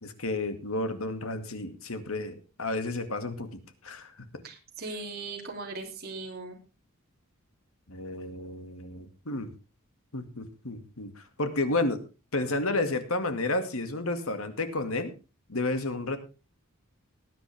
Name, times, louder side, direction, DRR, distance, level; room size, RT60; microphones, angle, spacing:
voice 1, 0.0-3.5 3.8-4.1 7.9-9.5 10.1-12.0 12.3-15.1 15.5-16.2, left 2 dB, 75° left, 8 dB, 2.2 m, -31 dB
voice 2, 4.4-6.6, right 3 dB, 50° right, 0 dB, 3.4 m, -39 dB
19.0 x 10.0 x 3.6 m, 0.31 s
head